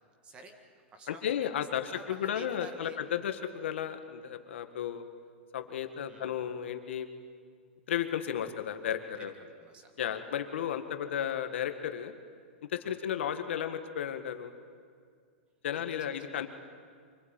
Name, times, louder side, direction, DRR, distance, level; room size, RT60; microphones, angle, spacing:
voice 1, 0.2-0.6 0.9-3.0 6.1-6.4 9.2-10.2 12.8-13.0 15.7-16.5, right 3 dB, 15° right, 6 dB, 1.9 m, -51 dB
voice 2, 1.1-5.0 5.5-7.1 7.9-9.3 10.0-12.1 12.7-14.5 15.6-16.5, left 9 dB, 65° left, 7 dB, 1.7 m, -34 dB
25.0 x 20.0 x 9.1 m, 2.1 s
supercardioid pair, 170°, 7 cm